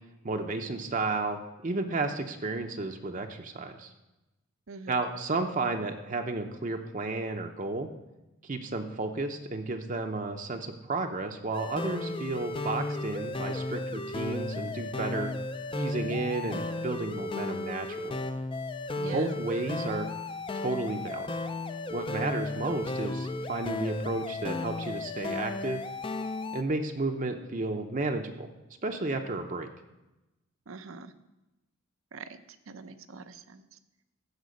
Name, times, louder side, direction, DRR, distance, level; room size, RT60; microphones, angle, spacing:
voice 1, 0.2-3.9 4.9-7.9 8.4-15.3 15.7-18.2 19.1-20.1 20.6-21.3 21.9-25.8 26.5-28.5 28.8-29.7, right 3 dB, 35° right, 4 dB, 0.6 m, -32 dB
voice 2, 4.7-5.1 19.0-19.4 30.7-31.1 32.1-32.4 32.7-33.8, right 4 dB, 75° right, 10 dB, 0.6 m, -44 dB
sound 1, 11.5-26.6, left 2 dB, 25° left, 0.4 m, -34 dB
14.5 x 5.1 x 5.1 m, 0.99 s
head